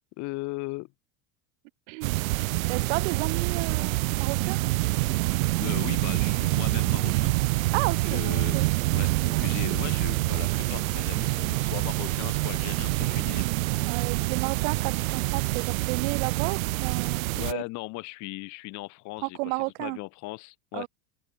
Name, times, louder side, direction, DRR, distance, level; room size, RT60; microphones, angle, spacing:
voice 1, 0.2-0.9 2.4-2.6 5.6-7.4 7.9-8.7 8.9-13.5 17.3-20.9, left 23 dB, 45° left, 1.4 m, -38 dB
sound 1, 2.0-17.5, right 21 dB, 85° right, 1.3 m, -26 dB
voice 2, 2.7-4.6 7.7-8.9 13.8-17.6 19.2-20.0 20.7-20.9, right 30 dB, 60° right, 0.9 m, -33 dB
open air
supercardioid pair, 155°, 40 cm